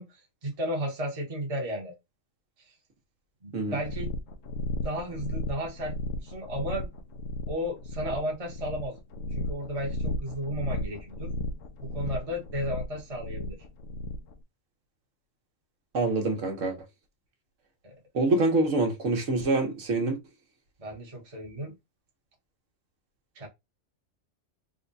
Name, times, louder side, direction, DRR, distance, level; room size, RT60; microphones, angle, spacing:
voice 1, 0.0-1.9 2.7-2.8 3.4-4.1 4.8-6.9 7.5-9.0 9.3-11.3 11.8-13.6 17.8-18.0 20.8-21.7 23.3-23.5, equal, 30° right, 1.0 m, -34 dB
sound 1, 3.8-14.3, left 1 dB, 80° left, 1.0 m, -35 dB
voice 2, 15.9-16.8 18.1-20.2, right 2 dB, 75° right, 1.4 m, -25 dB
3.7 x 2.2 x 3.9 m
omnidirectional pair, 1.3 m